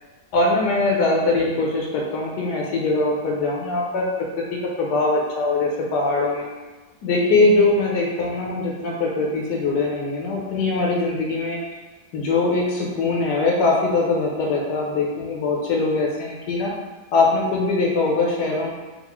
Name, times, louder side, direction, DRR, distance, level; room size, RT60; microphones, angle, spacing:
voice 1, 0.3-4.1 4.5-6.5 7.0-11.6 12.1-16.7 17.1-18.7, left 3 dB, 80° left, -2 dB, 1.2 m, -22 dB
3.9 x 2.4 x 2.9 m, 1.2 s
omnidirectional pair, 1.8 m